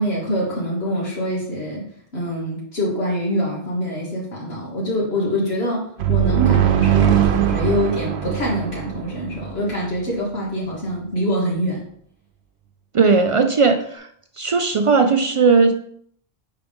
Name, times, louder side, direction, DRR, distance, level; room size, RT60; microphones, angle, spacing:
voice 1, 0.0-1.8 2.1-11.8, equal, 80° left, -4 dB, 1.6 m, -24 dB
sound 1, 6.0-9.7, right 10 dB, 90° right, 0.9 m, -20 dB
voice 2, 12.9-14.1 14.4-15.7, right 4 dB, 55° right, 6 dB, 0.3 m, -17 dB
4.9 x 3.7 x 5.2 m, 0.64 s
omnidirectional pair, 1.1 m